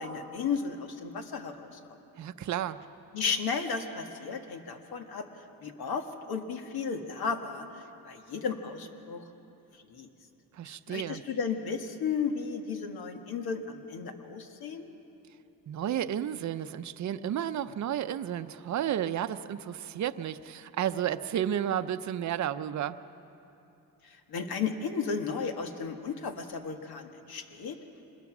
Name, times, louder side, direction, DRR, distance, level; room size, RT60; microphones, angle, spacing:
voice 1, 0.0-1.8 3.1-5.3 5.6-9.3 9.9-10.1 10.7-14.9 24.0-27.8, left 5 dB, 70° left, 5 dB, 1.8 m, -34 dB
voice 2, 2.2-2.8 10.5-11.2 15.7-23.0, right 10 dB, 50° right, 9 dB, 0.7 m, -32 dB
26.0 x 21.0 x 6.1 m, 2.9 s
cardioid pair, 120°, 37 cm